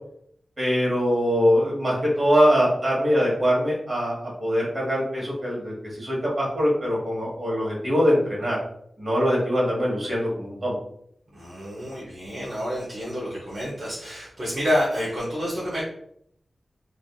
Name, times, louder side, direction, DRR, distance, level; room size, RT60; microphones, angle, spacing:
voice 1, 0.6-8.6 9.0-10.7, equal, 35° right, -5 dB, 1.3 m, -23 dB
voice 2, 11.3-15.8, equal, 50° right, -7 dB, 0.8 m, -28 dB
2.5 x 2.5 x 2.2 m, 0.69 s
wide cardioid pair, 80°, 0 cm